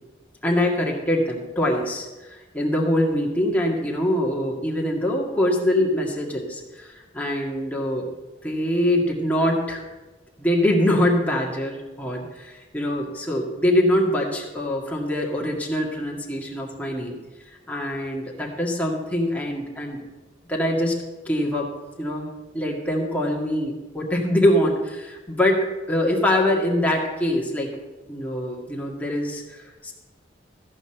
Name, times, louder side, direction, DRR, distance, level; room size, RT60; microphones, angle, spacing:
voice 1, 0.4-8.1 8.4-9.8 10.4-17.2 17.7-20.0 20.5-21.0 21.3-21.7 22.0-22.3 22.5-27.7 28.1-29.9, left 1 dB, 10° left, -2 dB, 1.9 m, -24 dB
14.5 x 5.4 x 7.8 m, 1.2 s
head